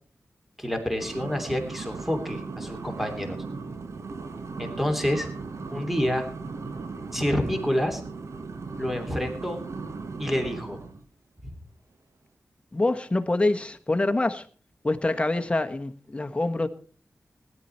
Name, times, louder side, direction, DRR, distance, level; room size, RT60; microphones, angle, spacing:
voice 1, 0.6-3.4 4.6-5.3 5.7-6.3 7.1-8.0 8.8-9.6 10.2-10.8, equal, 5° right, 5 dB, 2.9 m, -28 dB
sound 1, 1.0-11.0, right 4 dB, 70° right, 1.4 m, -37 dB
voice 2, 12.7-14.5 14.8-16.7, left 2 dB, 25° left, 7 dB, 1.3 m, -25 dB
17.5 x 11.0 x 4.5 m, 0.42 s
wide cardioid pair, 90°, 5 cm